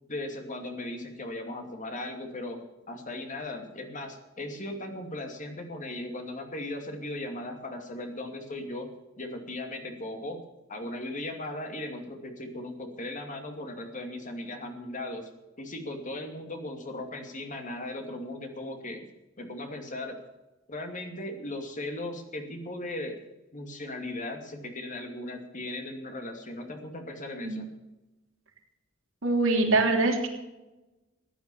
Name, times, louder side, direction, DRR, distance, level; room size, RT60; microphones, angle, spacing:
voice 1, 0.1-2.6 2.9-8.9 9.2-10.4 10.7-15.3 15.6-19.1 19.4-20.2 20.7-23.2 23.5-27.7, left 1 dB, 40° left, 4 dB, 2.6 m, -37 dB
voice 2, 29.2-30.3, right 2 dB, 80° right, 2 dB, 3.2 m, -23 dB
15.5 x 10.5 x 7.0 m, 1.0 s
head